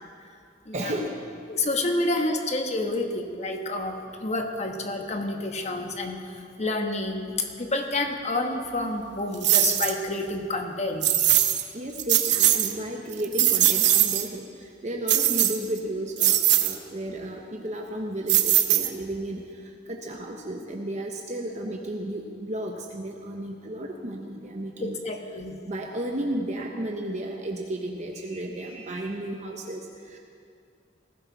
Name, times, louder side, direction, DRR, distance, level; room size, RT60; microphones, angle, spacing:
voice 1, 0.7-1.2 11.7-25.0 25.6-30.2, right 1 dB, 40° right, 1 dB, 1.0 m, -33 dB
voice 2, 1.5-11.0 24.8-25.6, left 2 dB, 40° left, 4 dB, 1.3 m, -29 dB
sound 1, 9.4-10.0 11.0-11.6 12.0-12.7 13.1-14.3 15.1-15.8 16.2-16.8 18.3-19.1, right 12 dB, 70° right, 0.9 m, -21 dB
19.0 x 15.5 x 4.1 m, 2.4 s
head